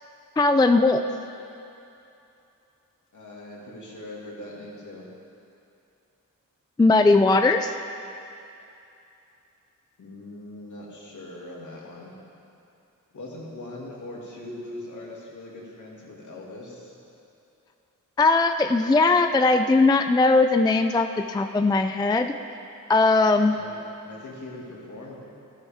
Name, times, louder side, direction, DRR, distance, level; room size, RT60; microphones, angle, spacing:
voice 1, 0.4-1.0 6.8-7.7 18.2-22.3 22.9-23.6, left 3 dB, 15° left, 8 dB, 0.3 m, -19 dB
voice 2, 3.1-5.1 10.0-12.1 13.1-17.0 23.5-23.8 24.0-25.2, left 1 dB, 65° left, -4 dB, 2.4 m, -41 dB
13.5 x 12.5 x 3.6 m, 2.7 s
wide cardioid pair, 90°, 33 cm